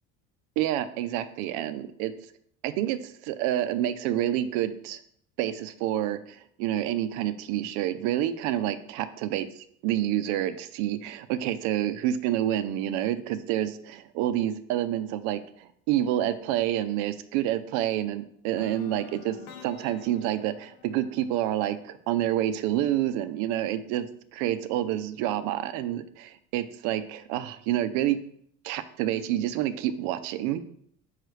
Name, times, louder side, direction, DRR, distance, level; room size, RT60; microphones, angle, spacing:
voice 1, 0.6-2.1 2.6-5.0 5.4-28.2 28.6-30.6, right 12 dB, 85° right, 12 dB, 0.6 m, -28 dB
sound 1, 18.6-22.5, left 9 dB, 60° left, 0.8 m, -48 dB
6.2 x 5.7 x 3.3 m, 0.66 s
cardioid pair, 175°, 29 cm